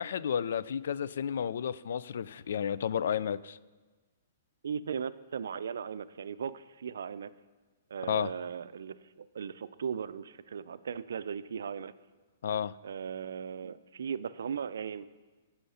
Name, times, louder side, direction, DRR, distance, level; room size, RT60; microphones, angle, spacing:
voice 1, 0.0-3.6 8.1-8.3 12.4-12.8, left 8 dB, 70° left, 18 dB, 0.4 m, -32 dB
voice 2, 4.6-7.3 7.9-11.9 12.8-15.0, right 7 dB, 80° right, 16 dB, 0.4 m, -37 dB
15.0 x 5.7 x 5.6 m, 1.3 s
hypercardioid pair, 165°, 0 cm